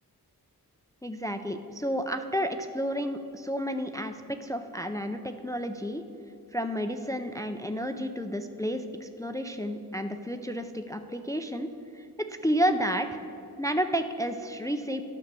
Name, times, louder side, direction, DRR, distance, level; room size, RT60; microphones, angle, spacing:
voice 1, 1.0-6.0 6.5-11.7 11.9-13.1 13.6-15.0, equal, 10° left, 8 dB, 0.4 m, -31 dB
9.6 x 6.3 x 6.8 m, 2.6 s
wide cardioid pair, 75°, 37 cm